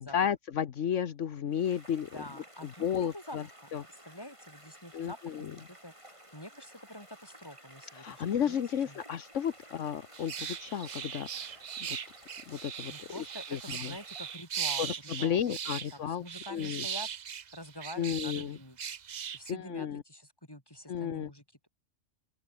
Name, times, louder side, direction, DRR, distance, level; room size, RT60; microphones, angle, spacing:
voice 1, 0.0-2.1 2.8-3.4 3.7-3.8 4.9-5.5 7.9-11.5 11.8-12.0 12.5-12.9 13.5-13.9 14.8-16.2 16.5-16.8 18.0-18.6 19.5-20.0 20.9-21.3, left 8 dB, 75° left, 1.3 m, -33 dB
sound 1, 1.5-14.4, right 1 dB, 25° right, 6.1 m, -55 dB
voice 2, 2.1-9.0 12.9-17.1 17.5-18.9 19.3-21.7, left 1 dB, 20° left, 6.8 m, -47 dB
sound 2, 10.1-18.5 18.8-19.5, right 8 dB, 45° right, 0.6 m, -39 dB
open air
omnidirectional pair, 1.3 m